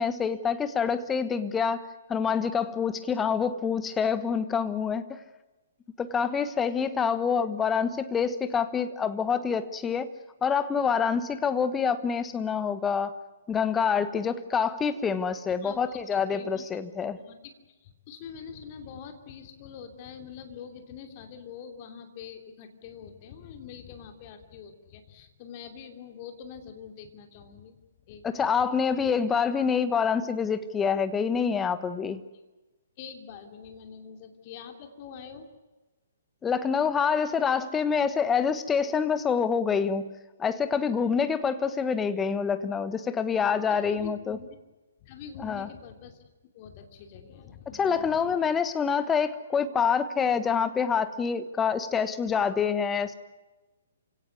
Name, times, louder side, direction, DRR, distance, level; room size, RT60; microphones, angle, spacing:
voice 1, 0.0-5.2 6.0-10.1 10.4-13.1 13.5-17.2 28.2-32.2 36.4-40.1 40.4-44.4 45.4-45.7 47.7-53.1, left 6 dB, 15° left, 12 dB, 1.3 m, -26 dB
voice 2, 15.6-16.0 16.3-16.6 17.0-27.8 28.1-28.5 33.0-35.5 43.5-44.5 45.0-46.2 46.5-48.5, left 7 dB, 35° left, 6 dB, 3.1 m, -45 dB
28.0 x 17.5 x 9.6 m, 1.1 s
figure-of-eight pair, 125°, 0 cm